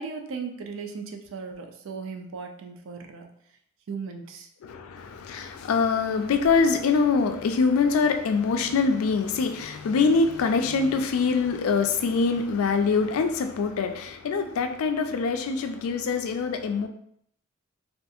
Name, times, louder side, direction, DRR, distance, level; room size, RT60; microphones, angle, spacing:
voice 1, 0.0-3.3 3.9-4.5, right 5 dB, 65° right, 4 dB, 0.4 m, -37 dB
voice 2, 4.6-16.9, left 4 dB, 90° left, 7 dB, 0.3 m, -24 dB
2.4 x 2.4 x 2.6 m, 0.69 s
head